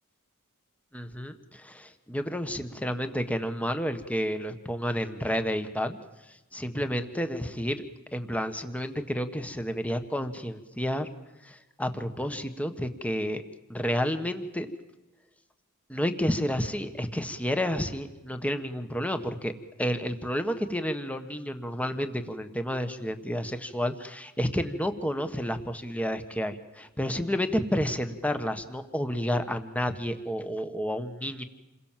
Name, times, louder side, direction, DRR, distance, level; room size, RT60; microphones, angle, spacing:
voice 1, 0.9-6.0 6.5-7.9 8.1-11.1 11.4-13.4 13.7-14.7 15.9-19.5 19.8-31.4, equal, 5° left, 8 dB, 1.6 m, -30 dB
28.5 x 21.5 x 7.6 m, 1.0 s
head